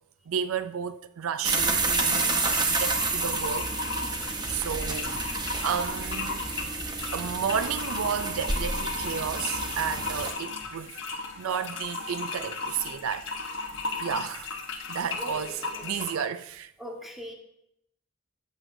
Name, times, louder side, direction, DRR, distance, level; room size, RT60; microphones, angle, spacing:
voice 1, 0.3-3.7 4.5-6.7 7.0-11.0 11.4-13.3 13.6-13.7 14.0-14.6 14.9-15.6 15.8-16.7, right 7 dB, 80° right, 0.4 m, -32 dB
sound 1, 1.4-10.3, right 3 dB, 20° right, 0.8 m, -29 dB
sound 2, 1.8-16.3, left 3 dB, 60° left, 1.2 m, -36 dB
voice 2, 15.2-16.2 16.8-17.3, left 1 dB, ahead, 1.3 m, -41 dB
13.5 x 8.1 x 2.6 m
head